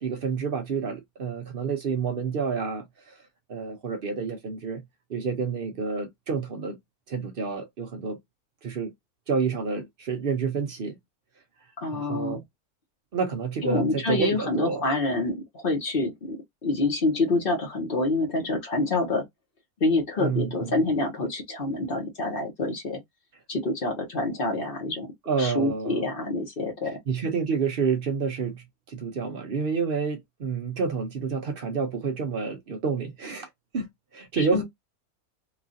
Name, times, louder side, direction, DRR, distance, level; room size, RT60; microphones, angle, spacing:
voice 1, 0.0-4.8 5.1-6.8 7.1-8.2 8.6-8.9 9.3-11.0 11.9-12.4 13.1-14.8 20.2-20.8 25.3-26.1 27.1-34.6, right 5 dB, 60° right, 0.6 m, -29 dB
voice 2, 11.8-12.4 13.6-19.2 19.8-23.0 23.5-25.1 25.4-27.0 34.4-34.6, left 2 dB, 45° left, 0.9 m, -27 dB
3.0 x 2.4 x 2.6 m
omnidirectional pair, 1.6 m